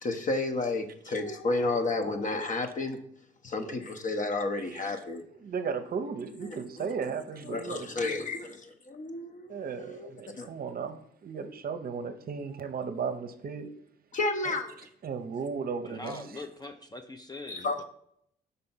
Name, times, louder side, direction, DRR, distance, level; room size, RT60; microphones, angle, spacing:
voice 1, 0.0-3.0 3.4-5.2 6.4-6.9 7.5-10.5 14.1-14.8 17.5-17.8, left 2 dB, 40° left, 0.8 m, -32 dB
voice 2, 5.4-7.9 9.5-13.7 15.0-16.2, right 5 dB, 50° right, 0.7 m, -35 dB
voice 3, 15.8-17.8, left 3 dB, 20° left, 0.5 m, -42 dB
5.5 x 3.4 x 5.6 m
cardioid pair, 90°, 20 cm